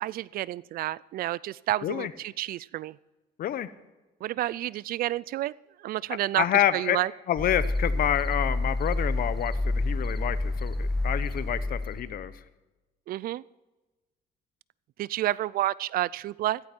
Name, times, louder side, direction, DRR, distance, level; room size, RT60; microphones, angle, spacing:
voice 1, 0.0-3.0 4.2-5.5 5.8-7.1 13.1-13.4 15.0-16.6, right 14 dB, 60° right, 22 dB, 0.4 m, -30 dB
voice 2, 6.4-7.0 7.3-12.3, left 11 dB, 60° left, 15 dB, 0.9 m, -28 dB
sound 1, 7.4-12.3, left 2 dB, ahead, 1.2 m, -29 dB
16.0 x 14.5 x 4.5 m, 1.1 s
cardioid pair, 110°, 17 cm